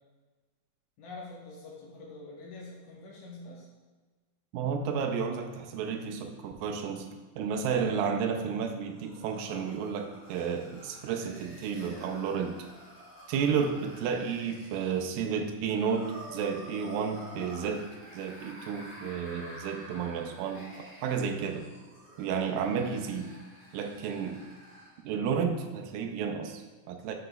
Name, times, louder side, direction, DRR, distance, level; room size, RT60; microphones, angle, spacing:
voice 1, 1.0-3.7, left 3 dB, 75° left, -3 dB, 1.9 m, -45 dB
voice 2, 4.5-7.1 7.4-12.6 13.3-21.7 22.2-23.3 23.7-24.4 25.0-27.1, right 6 dB, 85° right, 5 dB, 2.2 m, -32 dB
sound 1, 8.4-25.0, right 1 dB, 10° right, 0.6 m, -50 dB
7.8 x 6.4 x 2.2 m, 1.3 s
omnidirectional pair, 4.1 m